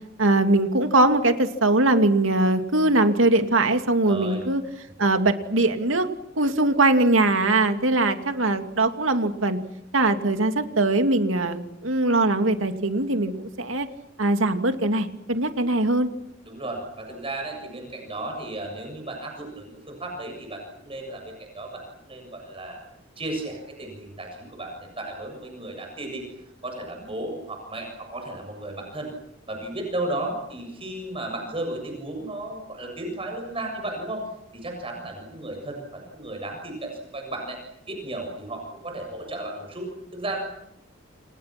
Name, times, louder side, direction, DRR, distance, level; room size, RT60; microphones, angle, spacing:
voice 1, 0.2-4.6 5.0-6.1 6.4-9.6 9.9-13.9 14.2-16.1, right 2 dB, 80° right, 7 dB, 2.7 m, -21 dB
voice 2, 4.0-4.4 16.4-22.8 23.2-26.3 26.6-29.1 29.5-34.2 34.5-37.6 37.9-40.4, right 2 dB, 30° right, 2 dB, 7.3 m, -34 dB
29.0 x 28.5 x 6.1 m, 0.80 s
head